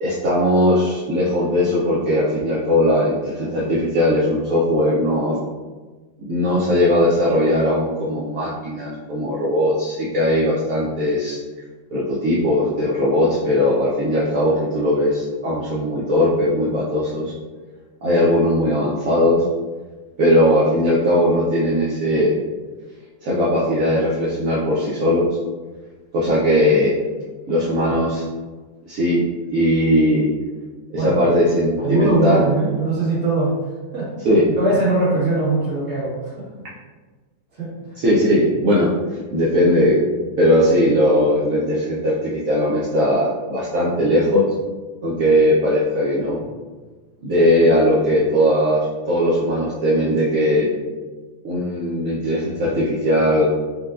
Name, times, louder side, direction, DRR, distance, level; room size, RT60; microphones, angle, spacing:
voice 1, 0.0-5.4 6.2-11.4 11.9-17.3 18.0-19.4 20.2-22.3 23.2-25.3 26.1-27.0 27.5-28.2 28.9-30.3 30.9-32.4 34.2-34.4 38.0-40.0 40.4-44.5 45.0-46.4 47.2-50.7 51.4-53.4, equal, 85° right, -6 dB, 0.7 m, -19 dB
voice 2, 31.8-34.1 34.5-36.7 37.5-37.7, right 2 dB, 40° right, -8 dB, 1.4 m, -21 dB
4.4 x 2.2 x 2.3 m, 1.3 s
omnidirectional pair, 2.1 m